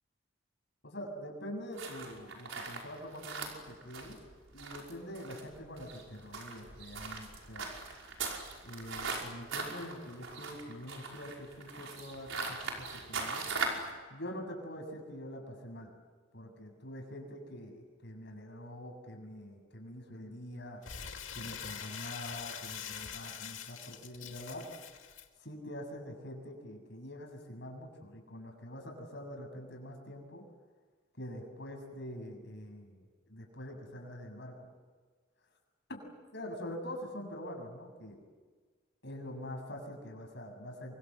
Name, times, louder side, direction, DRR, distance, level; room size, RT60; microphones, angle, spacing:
voice 1, 0.8-4.2 4.5-7.7 8.6-13.5 14.1-15.9 16.3-20.8 21.3-24.7 25.4-30.4 31.2-33.0 33.3-34.6 35.9-36.0 36.3-38.2 39.0-41.0, equal, 60° left, 3 dB, 7.4 m, -45 dB
sound 1, 1.8-13.9, right 4 dB, 85° right, 5.5 m, -40 dB
Crumpling crinkling, 20.8-25.2, left 8 dB, 80° left, 2.6 m, -44 dB
29.0 x 24.5 x 7.8 m, 1.4 s
head